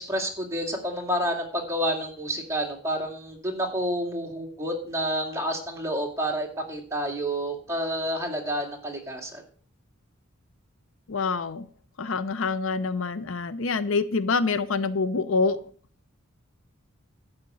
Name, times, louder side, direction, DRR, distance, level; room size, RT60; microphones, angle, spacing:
voice 1, 0.0-9.4, equal, 15° right, 0 dB, 2.4 m, -29 dB
voice 2, 11.1-11.7 12.0-15.6, left 4 dB, 70° left, 14 dB, 0.6 m, -26 dB
11.5 x 5.1 x 8.4 m, 0.44 s
head